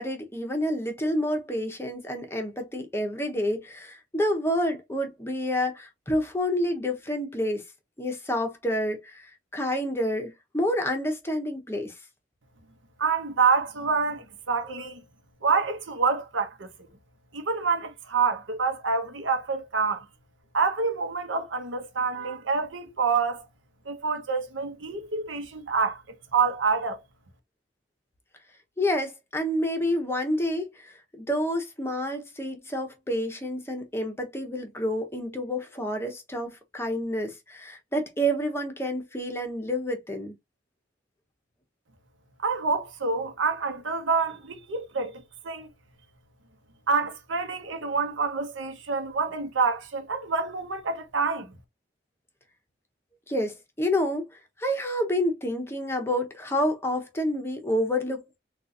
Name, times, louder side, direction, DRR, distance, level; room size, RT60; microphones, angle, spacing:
voice 1, 0.0-7.6 8.0-11.9 28.8-40.3 53.3-54.3 54.6-58.4, equal, 15° left, 0.8 m, -29 dB
voice 2, 13.0-15.0 15.4-16.7 17.3-20.1 20.5-23.5 23.9-26.0 26.3-27.0 42.4-45.7 46.9-51.6, right 5 dB, 90° right, 0.8 m, -27 dB
3.8 x 2.4 x 2.7 m
head